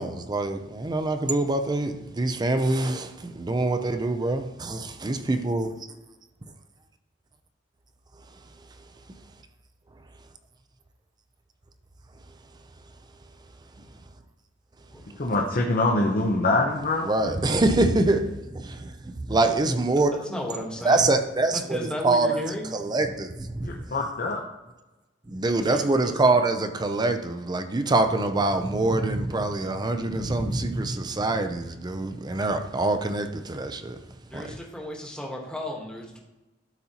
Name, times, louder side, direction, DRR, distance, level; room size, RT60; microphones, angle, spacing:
voice 1, 0.0-5.7 17.0-20.2 20.8-21.8 22.0-22.4 22.7-23.8 25.3-34.0 34.3-34.4, right 2 dB, 20° right, 0.5 m, -25 dB
voice 2, 15.2-17.1 23.6-24.4, left 2 dB, 50° left, 0.8 m, -24 dB
voice 3, 20.1-21.1 21.5-22.7 25.6-26.4 34.3-36.2, left 1 dB, 5° left, 1.2 m, -35 dB
12.0 x 4.2 x 2.9 m
head